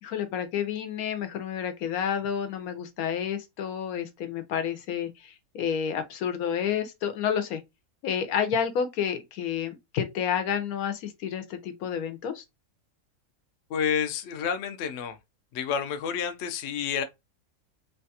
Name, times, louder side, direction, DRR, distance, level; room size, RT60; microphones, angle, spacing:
voice 1, 0.0-7.6 8.0-12.4, left 8 dB, 85° left, 1.1 m, -30 dB
voice 2, 13.7-15.2 15.5-17.0, left 7 dB, 65° left, 0.7 m, -29 dB
3.2 x 2.3 x 2.7 m
omnidirectional pair, 1.5 m